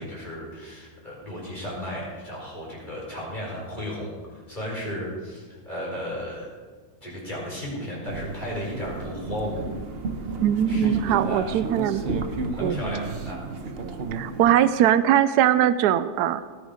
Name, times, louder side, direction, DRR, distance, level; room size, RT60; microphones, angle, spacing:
voice 1, 0.0-4.1 4.5-6.5 7.0-9.7 10.7-11.5 12.5-13.4, equal, 30° left, -6 dB, 4.8 m, -34 dB
sound 1, 8.1-14.6, right 3 dB, 45° right, 1.0 m, -32 dB
voice 2, 10.4-12.0 12.6-12.8 14.1-16.4, right 11 dB, 85° right, 13 dB, 1.1 m, -21 dB
18.0 x 9.1 x 5.0 m, 1.5 s
omnidirectional pair, 1.7 m